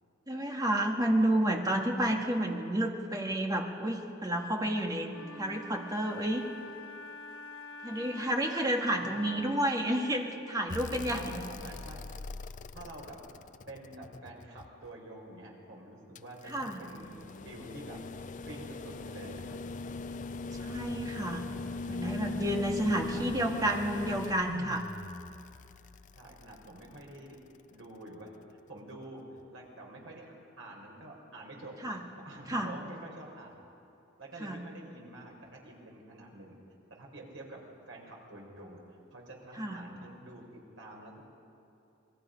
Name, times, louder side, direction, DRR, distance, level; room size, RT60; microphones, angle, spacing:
voice 1, 0.3-6.4 7.8-11.2 16.5-16.8 20.6-21.4 21.9-24.9 31.8-32.0 32.5-32.7 34.4-34.6 39.6-39.8, right 1 dB, 20° right, 1 dB, 1.9 m, -30 dB
Wind instrument woodwind instrument, 5.1-9.9, left 2 dB, 85° left, 1.5 m, -46 dB
voice 2, 9.0-9.3 10.9-12.0 12.7-13.2 13.7-17.2 17.4-18.0 18.4-19.6 23.1-23.7 26.1-27.4 27.7-33.6 34.2-36.6 36.9-40.5 40.8-41.3, right 1 dB, 80° right, -1 dB, 5.0 m, -48 dB
sound 1, 10.7-14.9 16.2-27.3 28.9-29.0, left 3 dB, 40° left, 0.5 m, -41 dB
28.0 x 22.0 x 5.3 m, 2.9 s
head